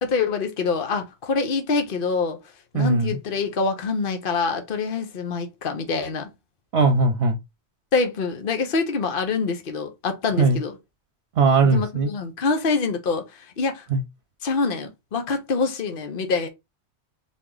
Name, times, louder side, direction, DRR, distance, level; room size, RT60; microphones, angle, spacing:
voice 1, 0.0-2.4 2.7-6.3 7.9-10.8 11.6-13.9 14.4-16.5, left 4 dB, 55° left, 1.1 m, -25 dB
voice 2, 2.7-3.2 6.7-7.4 10.4-10.6 11.4-12.1 13.9-14.0, right 3 dB, 70° right, 1.0 m, -19 dB
4.2 x 3.0 x 3.8 m
omnidirectional pair, 1.2 m